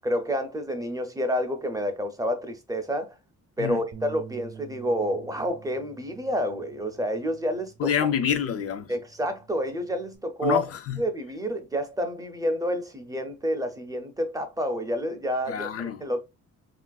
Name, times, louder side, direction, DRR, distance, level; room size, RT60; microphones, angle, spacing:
voice 1, 0.0-3.1 3.6-8.1 8.9-10.6 11.0-16.2, equal, 10° right, 0.5 m, -29 dB
Bass guitar, 3.9-10.2, right 7 dB, 60° right, 0.5 m, -48 dB
voice 2, 7.8-8.9 10.4-11.0 15.5-16.0, left 8 dB, 50° left, 0.4 m, -27 dB
3.1 x 2.5 x 2.3 m
wide cardioid pair, 140°, 31 cm